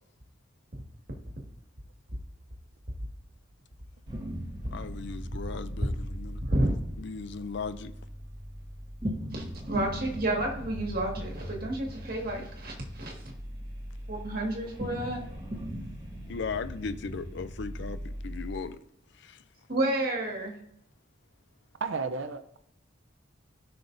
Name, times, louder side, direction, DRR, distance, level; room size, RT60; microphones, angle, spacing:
sound 1, 4.1-18.6, equal, 25° right, 1.5 m, -39 dB
voice 1, 4.7-6.4 7.0-7.9 16.3-18.8 19.1-19.4, left 5 dB, 60° left, 0.5 m, -37 dB
voice 2, 6.4-6.7 9.3-13.2 14.1-15.2 19.7-20.6, right 1 dB, 50° right, 1.8 m, -30 dB
voice 3, 21.8-22.6, right 4 dB, 75° right, 0.6 m, -33 dB
17.0 x 5.8 x 2.6 m
head